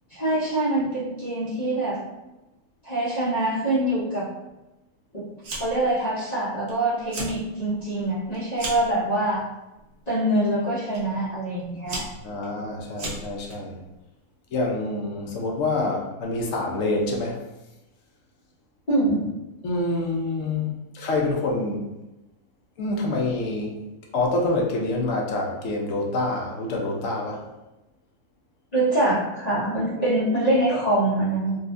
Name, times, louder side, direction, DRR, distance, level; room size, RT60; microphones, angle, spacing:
voice 1, 0.1-2.0 2.8-4.3 5.1-5.2 5.5-9.4 10.1-12.0 18.9-19.3 28.7-31.6, right 1 dB, 35° left, -10 dB, 0.7 m, -24 dB
Fire, 5.4-5.9 6.2-6.7 7.0-7.4 7.8-8.9 9.7-10.1 10.9-11.0 11.6-13.5, right 2 dB, 70° right, 1.3 m, -35 dB
voice 2, 12.1-13.8 14.5-17.4 19.6-21.8 22.8-23.8 24.1-27.4 30.0-30.2, left 2 dB, 65° left, 0 dB, 0.9 m, -26 dB
3.8 x 2.4 x 2.5 m, 1.0 s
omnidirectional pair, 1.7 m